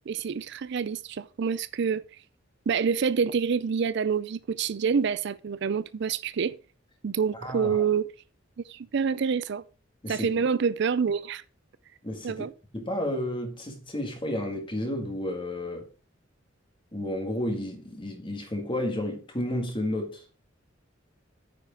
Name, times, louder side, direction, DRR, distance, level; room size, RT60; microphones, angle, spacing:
voice 1, 0.1-2.0 2.7-6.6 7.0-8.1 8.7-9.6 10.1-11.4 12.2-12.5, right 6 dB, 60° right, 0.4 m, -27 dB
voice 2, 7.4-7.8 10.0-10.3 12.0-12.5 12.7-15.9 16.9-20.2, left 1 dB, 25° left, 1.9 m, -32 dB
9.4 x 4.9 x 5.2 m
head